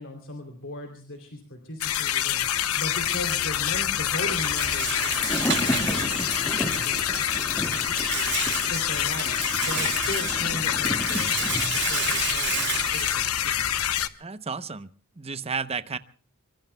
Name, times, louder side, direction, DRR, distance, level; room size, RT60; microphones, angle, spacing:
voice 1, 0.0-8.4 8.7-13.8, left 1 dB, 60° left, 4 dB, 3.1 m, -38 dB
sound 1, 1.8-14.1, left 10 dB, 85° left, 0.9 m, -26 dB
Thunder, 2.4-13.3 13.6-13.7, equal, 10° left, 1.8 m, -35 dB
Rattle, 3.0-14.0, right 9 dB, 55° right, 1.9 m, -33 dB
voice 2, 14.2-14.9 15.2-16.0, right 5 dB, 30° right, 13 dB, 0.8 m, -32 dB
25.5 x 24.0 x 2.3 m, 0.43 s
head